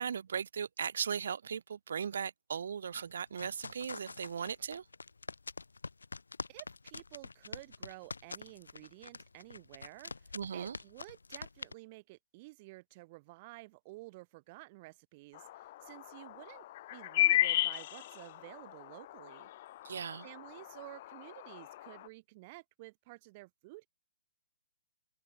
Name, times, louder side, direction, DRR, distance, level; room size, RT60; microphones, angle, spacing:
voice 1, 0.0-4.8 10.3-10.8 19.8-20.3, right 7 dB, 65° right, 7.3 m, -37 dB
sound 1, 2.9-11.7, left 4 dB, 80° left, 6.9 m, -46 dB
voice 2, 6.5-19.5 20.2-23.9, right 22 dB, 35° right, 6.6 m, -52 dB
sound 2, 15.3-22.1, left 15 dB, 45° left, 1.1 m, -35 dB
figure-of-eight pair, 130°, 0 cm